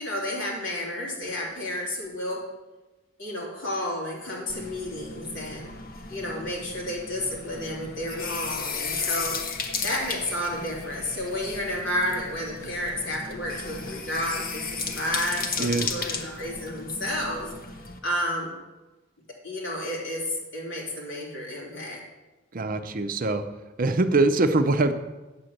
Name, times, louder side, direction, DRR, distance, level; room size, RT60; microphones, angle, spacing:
voice 1, 0.0-2.4 3.2-5.7 6.1-9.4 9.8-17.5 18.0-18.5 19.3-22.0, left 1 dB, 70° left, -3 dB, 3.4 m, -31 dB
sound 1, 4.5-18.0, left 4 dB, 50° left, 1.1 m, -35 dB
voice 2, 22.5-23.5 23.8-24.9, right 2 dB, 45° right, 9 dB, 0.6 m, -23 dB
8.6 x 7.5 x 6.5 m, 1.1 s
head